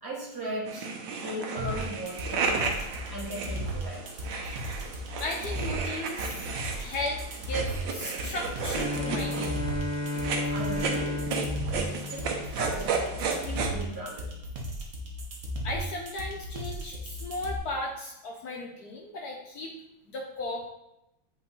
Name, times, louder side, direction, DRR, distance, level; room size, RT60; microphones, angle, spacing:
voice 1, 0.0-2.7 3.1-4.1 10.5-11.3 11.7-13.0 13.4-14.3, right 1 dB, 15° right, -5 dB, 1.1 m, -37 dB
sound 1, 0.7-13.7, right 5 dB, 65° right, 1.3 m, -34 dB
sound 2, 1.6-17.6, equal, 45° right, 1.1 m, -36 dB
voice 2, 5.2-6.5 6.8-9.6 15.6-19.7 20.1-20.7, left 1 dB, 70° left, 0 dB, 0.9 m, -35 dB
Bowed string instrument, 8.6-12.7, left 2 dB, 35° left, 0.9 m, -33 dB
8.0 x 3.7 x 4.0 m, 0.89 s
omnidirectional pair, 2.4 m